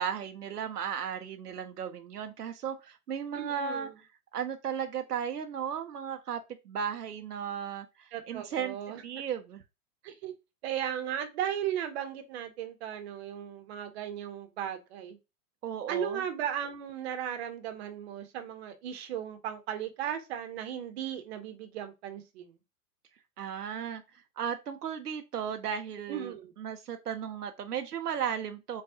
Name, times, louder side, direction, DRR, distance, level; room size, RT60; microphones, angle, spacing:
voice 1, 0.0-3.9 4.3-8.8 9.0-9.6 15.6-16.2 23.4-24.0 24.4-28.8, right 8 dB, 80° right, 0.6 m, -35 dB
voice 2, 3.3-3.9 8.1-9.0 10.0-10.3 10.6-15.2 15.9-22.6 26.1-26.5, right 9 dB, 45° right, 0.8 m, -36 dB
4.6 x 2.3 x 2.8 m
figure-of-eight pair, 105°, 46 cm